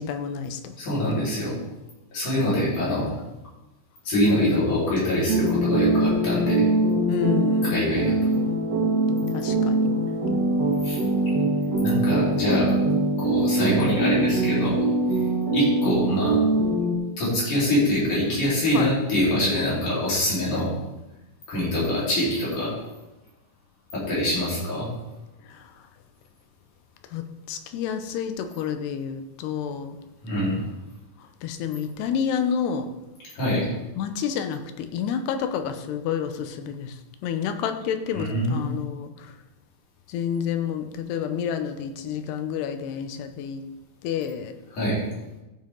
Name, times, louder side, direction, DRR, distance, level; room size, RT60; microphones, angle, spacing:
voice 1, 0.0-0.7 7.1-7.8 9.3-9.9 14.6-14.8 18.7-18.9 25.5-25.7 27.1-30.0 31.2-32.9 34.0-39.3 40.1-43.7 44.0-44.5, left 8 dB, 85° left, 8 dB, 2.9 m, -29 dB
voice 2, 0.8-1.5 2.1-3.1 4.1-6.6 7.6-8.3 10.8-11.0 11.8-12.8 13.2-14.8 15.5-16.4 17.2-20.7 21.5-22.7 23.9-24.9 30.2-30.6 33.4-33.6 38.2-38.7 44.7-45.0, left 1 dB, 50° left, -8 dB, 5.4 m, -24 dB
sound 1, 5.3-17.0, right 2 dB, 60° right, 1.1 m, -23 dB
14.5 x 7.5 x 3.8 m, 1.0 s
omnidirectional pair, 4.6 m